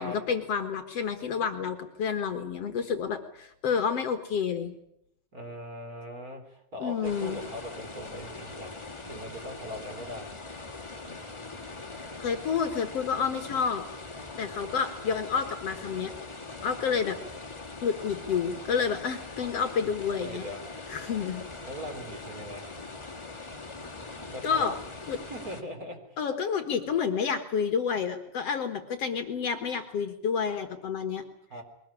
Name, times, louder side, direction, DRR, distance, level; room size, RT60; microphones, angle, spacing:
voice 1, 0.0-4.7 6.8-7.4 12.0-13.8 14.4-16.1 16.6-17.2 17.8-20.5 20.9-21.4 24.4-24.8 25.1-25.2 26.2-31.2, left 6 dB, 60° left, 7 dB, 2.4 m, -29 dB
voice 2, 5.3-8.8 9.1-10.3 20.2-20.6 21.6-22.7 24.3-24.7 25.3-26.0 31.5-31.6, equal, 30° right, 4 dB, 3.8 m, -40 dB
sound 1, 7.0-25.6, left 3 dB, 10° left, 1.5 m, -42 dB
22.5 x 19.0 x 9.9 m, 0.75 s
omnidirectional pair, 3.4 m